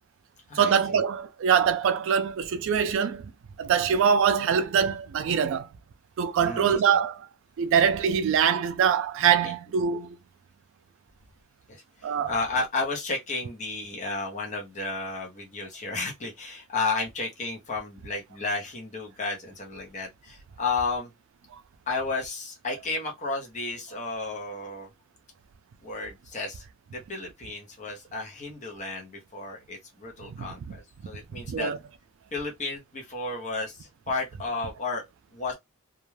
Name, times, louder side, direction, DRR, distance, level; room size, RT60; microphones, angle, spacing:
voice 1, 0.6-3.3 3.6-5.7 6.2-7.3 7.6-10.2 12.0-12.3 30.4-30.5 31.5-31.8, right 7 dB, 65° right, 0.3 m, -23 dB
voice 2, 6.4-6.8 9.4-9.5 11.7-11.8 12.3-21.1 21.9-24.9 25.8-26.6 26.9-31.7 32.3-35.0 35.3-35.5, left 3 dB, 35° left, 0.7 m, -32 dB
2.4 x 2.2 x 3.1 m
head